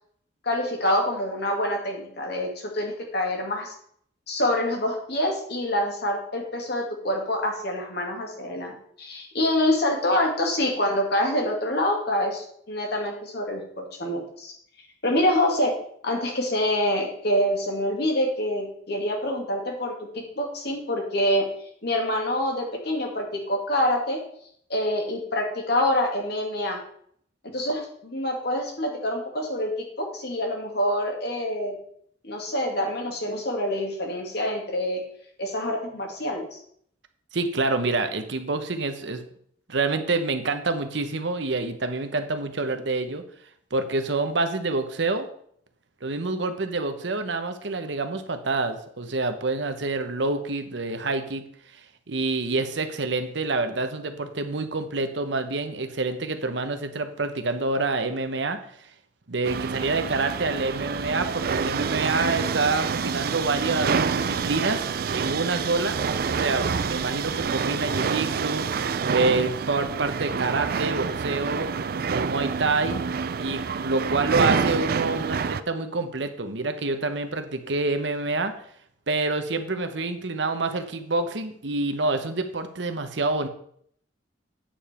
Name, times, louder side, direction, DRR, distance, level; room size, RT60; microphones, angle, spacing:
voice 1, 0.4-3.7 4.3-14.5 15.0-15.8 16.0-21.5 21.8-24.2 24.7-26.8 27.5-31.8 32.2-35.0 35.4-36.6, left 1 dB, 60° left, 1 dB, 2.3 m, -26 dB
voice 2, 37.3-39.2 39.7-43.2 43.7-45.3 46.0-51.4 52.1-58.6 59.3-71.7 72.1-73.0 73.4-78.5 79.1-83.5, right 3 dB, 70° right, 8 dB, 1.0 m, -27 dB
sound 1, 59.4-75.6, right 5 dB, 50° right, 0.4 m, -27 dB
8.8 x 7.2 x 4.4 m, 0.65 s
head